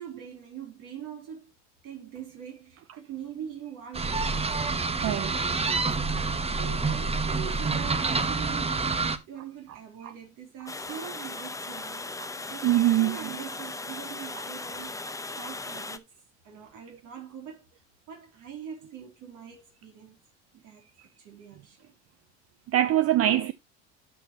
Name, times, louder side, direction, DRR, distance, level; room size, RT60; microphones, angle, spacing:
voice 1, 0.0-1.5 1.8-4.6 6.0-16.1 16.4-17.7 18.1-20.2 20.5-20.9 21.2-21.9 23.2-23.5, right 8 dB, 60° right, 3.4 m, -43 dB
sound 1, 3.9-9.2, right 4 dB, 15° right, 1.0 m, -27 dB
voice 2, 4.6-5.5 12.6-13.3 22.7-23.5, right 13 dB, 40° right, 0.6 m, -24 dB
Water, 10.7-16.0, left 3 dB, 10° left, 0.8 m, -38 dB
12.5 x 6.2 x 2.9 m
hypercardioid pair, 75°, 36 cm